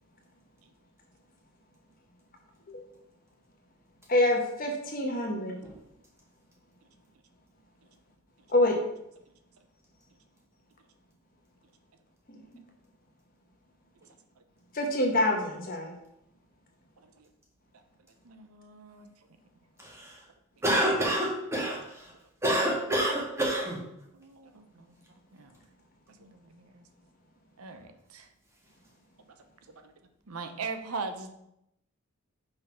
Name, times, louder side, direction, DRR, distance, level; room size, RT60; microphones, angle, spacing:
voice 1, 4.1-5.6 8.5-8.8 12.3-12.6 14.7-15.9, left 1 dB, 40° left, 2 dB, 1.1 m, -27 dB
voice 2, 17.0-17.3 18.2-19.1 24.1-25.0 25.3-25.5 26.1-26.8 27.6-28.3 29.3-29.4 29.8-29.9 30.3-31.3, right 4 dB, 85° right, 7 dB, 0.7 m, -41 dB
voice 3, 19.8-20.3 20.6-22.1 22.4-23.8, right 1 dB, 10° right, -3 dB, 1.6 m, -28 dB
5.2 x 4.1 x 5.6 m, 0.81 s
head